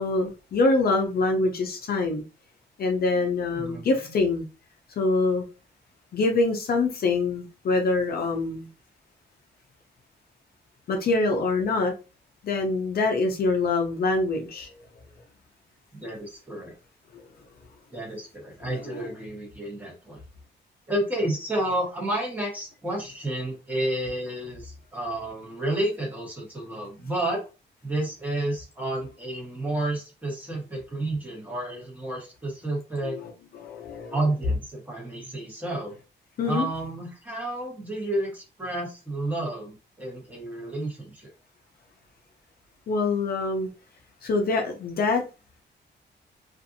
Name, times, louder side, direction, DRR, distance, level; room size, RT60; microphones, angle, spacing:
voice 1, 0.0-2.2 2.8-4.5 5.0-5.4 6.1-8.7 10.9-11.9 12.4-14.7 17.1-17.2 18.9-19.1 33.0-34.2 36.4-36.7 42.9-43.7 44.2-45.2, left 3 dB, 55° left, 0.5 m, -25 dB
voice 2, 3.5-3.9 15.9-16.8 17.9-20.2 20.9-27.4 27.8-33.2 34.1-35.9 36.4-41.3, right 1 dB, 10° right, 1.2 m, -31 dB
2.6 x 2.4 x 2.6 m
wide cardioid pair, 145°, 19 cm